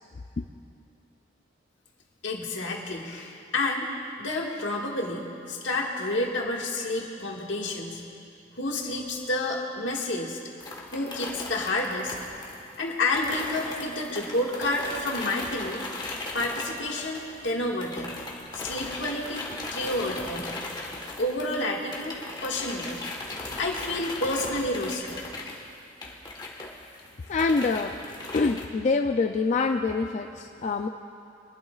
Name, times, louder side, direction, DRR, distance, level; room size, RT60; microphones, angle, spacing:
voice 1, 2.2-8.0 8.6-10.4 10.9-12.1 12.8-15.8 16.1-20.5 21.2-22.2 22.4-23.0 23.6-25.2, left 2 dB, 80° left, -2 dB, 1.8 m, -30 dB
sound 1, 10.6-17.5 17.8-28.7, left 2 dB, 25° left, 1.3 m, -38 dB
voice 2, 27.3-28.0 28.3-30.9, left 4 dB, 40° left, 5 dB, 0.4 m, -25 dB
23.0 x 12.0 x 2.4 m, 2.5 s
head